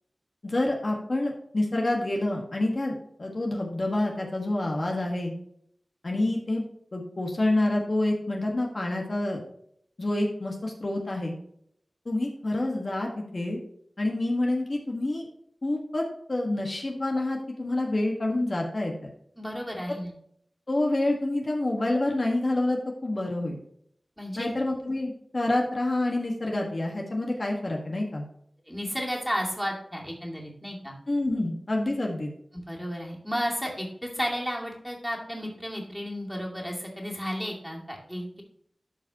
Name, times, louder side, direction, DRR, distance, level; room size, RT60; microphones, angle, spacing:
voice 1, 0.4-5.3 6.0-6.6 6.9-9.4 10.0-11.3 12.0-13.6 14.0-15.2 15.6-16.0 16.3-19.1 20.7-23.6 24.4-28.3 31.1-32.3, left 2 dB, 50° left, 0 dB, 1.4 m, -27 dB
voice 2, 19.4-20.1 24.2-24.5 28.7-30.9 32.5-38.4, equal, ahead, -2 dB, 2.3 m, -33 dB
12.5 x 5.2 x 2.9 m, 0.69 s
wide cardioid pair, 75°, 0 cm